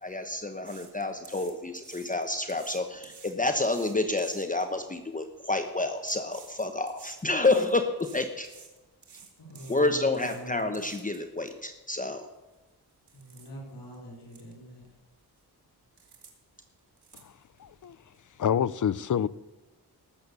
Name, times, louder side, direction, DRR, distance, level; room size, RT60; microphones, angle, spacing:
voice 1, 0.0-8.5 9.7-12.3, left 2 dB, 20° left, 1.0 m, -29 dB
sound 1, 0.6-4.7 5.3-5.6 6.0-11.5 12.0-12.1 12.5-12.7 13.1-13.5 13.9-14.0 14.3-14.5 14.8-15.4 16.0-16.3 16.6-17.7 18.1-18.2, right 6 dB, 80° right, 2.6 m, -52 dB
voice 2, 9.5-10.7 13.1-14.8, equal, 90° left, 5.1 m, -44 dB
voice 3, 17.6-18.0 18.4-19.3, left 8 dB, 50° left, 0.6 m, -27 dB
19.0 x 7.8 x 6.9 m
cardioid pair, 75°, 39 cm